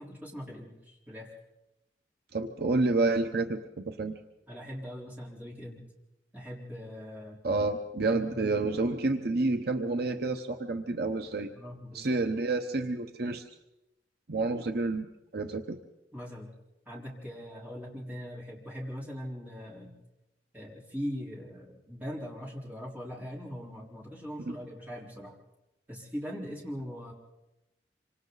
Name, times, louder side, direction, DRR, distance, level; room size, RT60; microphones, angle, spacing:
voice 1, 0.0-1.3 4.5-5.9 6.3-7.4 8.1-8.5 11.4-12.2 16.1-16.5 16.9-19.9 20.5-25.4 25.9-27.1, equal, 10° right, -3 dB, 4.4 m, -41 dB
voice 2, 2.3-4.2 7.4-11.5 11.9-13.4 14.3-15.1 15.3-15.8 24.5-24.6, right 3 dB, 60° right, 6 dB, 1.0 m, -29 dB
26.5 x 25.5 x 4.1 m, 0.94 s
head